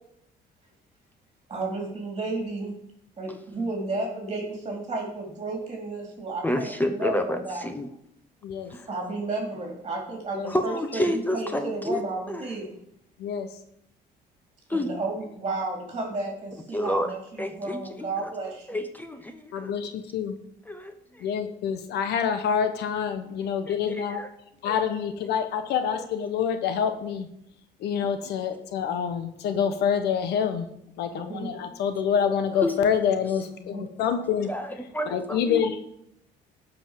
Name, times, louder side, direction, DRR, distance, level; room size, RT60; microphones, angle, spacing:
voice 1, 1.5-2.7 3.2-7.7 8.9-12.7 14.7-18.7 31.0-31.5 33.6-33.9, right 2 dB, 30° right, 0 dB, 3.7 m, -32 dB
voice 2, 6.4-7.9 8.7-8.9 10.5-12.0 12.3-12.5 14.7-14.9 16.7-17.1 17.4-18.3 18.7-19.7 20.7-21.2 23.7-24.3 24.6-24.8 32.6-32.7 34.5-35.6, left 1 dB, 10° left, 8 dB, 1.0 m, -29 dB
voice 3, 13.2-13.6 19.5-20.4 21.2-24.2 24.6-27.3 27.8-30.7 31.0-34.5 35.0-35.9, left 7 dB, 75° left, 9 dB, 1.2 m, -27 dB
12.5 x 5.6 x 7.6 m, 0.76 s
cardioid pair, 110°, 17 cm